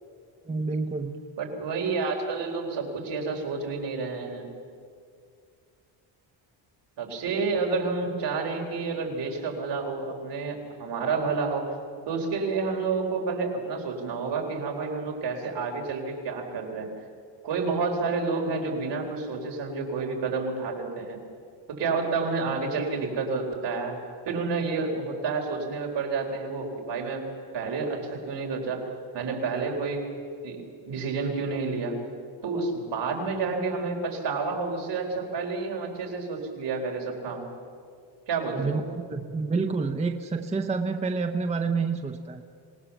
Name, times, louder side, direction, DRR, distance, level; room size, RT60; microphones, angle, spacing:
voice 1, 0.5-1.2 38.5-42.4, right 4 dB, 15° right, 6 dB, 0.7 m, -28 dB
voice 2, 1.4-4.5 7.0-11.7 12.1-16.9 17.4-21.2 21.7-27.3 27.5-28.9 29.1-30.1 30.4-32.0 32.4-37.5 38.3-38.8, right 4 dB, 60° right, 1 dB, 4.0 m, -29 dB
26.0 x 19.0 x 7.1 m, 2.3 s
cardioid pair, 175°, 48 cm